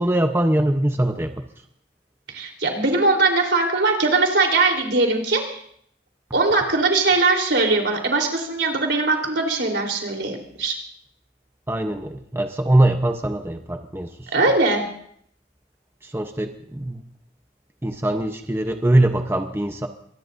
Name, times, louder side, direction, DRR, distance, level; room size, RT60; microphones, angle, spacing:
voice 1, 0.0-1.4 11.7-14.3 16.0-17.0 17.8-19.9, right 1 dB, 15° right, 5 dB, 0.8 m, -22 dB
voice 2, 2.3-5.6 6.3-10.7 14.3-14.8, right 3 dB, 80° right, 1 dB, 3.6 m, -20 dB
24.0 x 19.0 x 2.6 m, 0.66 s
head